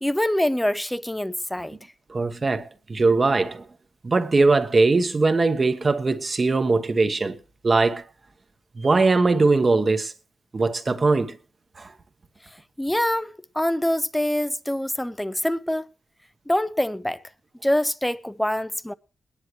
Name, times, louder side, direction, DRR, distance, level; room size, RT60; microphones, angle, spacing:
voice 1, 0.0-1.8 12.8-15.8 16.5-17.2 17.6-18.9, left 1 dB, 5° left, 0.6 m, -25 dB
voice 2, 2.1-3.7 4.0-7.4 7.6-8.0 8.8-10.1 10.5-11.4 11.8-11.9, right 3 dB, 30° right, 1.2 m, -21 dB
22.0 x 10.0 x 3.1 m
wide cardioid pair, 120°, 0 cm